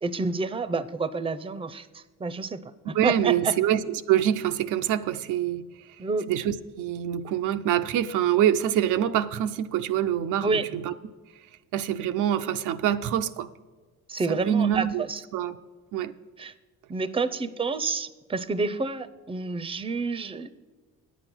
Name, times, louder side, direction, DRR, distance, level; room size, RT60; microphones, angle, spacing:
voice 1, 0.0-2.6 2.9-3.5 6.0-6.3 10.4-10.7 14.1-15.2 16.4-16.5 16.9-20.5, right 4 dB, 20° right, 15 dB, 0.6 m, -29 dB
voice 2, 2.9-5.7 6.3-10.9 11.7-13.5 14.3-15.0 15.3-15.6 15.9-16.1, right 10 dB, 90° right, 8 dB, 0.6 m, -25 dB
9.6 x 8.1 x 6.1 m, 1.3 s
cardioid pair, 90°, 30 cm